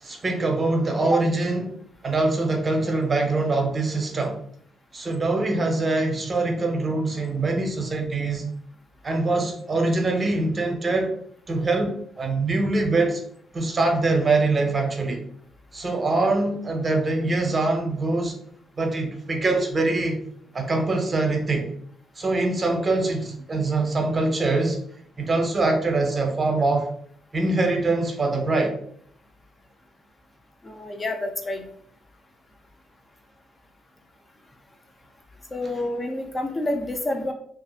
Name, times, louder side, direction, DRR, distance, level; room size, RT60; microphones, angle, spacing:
voice 1, 0.0-1.7 2.0-4.4 4.9-8.5 9.0-11.1 11.5-13.2 13.5-15.2 15.7-18.3 18.8-20.2 20.5-21.7 22.2-24.8 25.2-26.9 27.3-28.8, right 2 dB, 30° right, 3 dB, 0.6 m, -23 dB
voice 2, 30.6-31.7 35.5-37.3, left 1 dB, 25° left, 4 dB, 0.4 m, -28 dB
2.7 x 2.4 x 2.3 m, 0.64 s
cardioid pair, 90°, 0 cm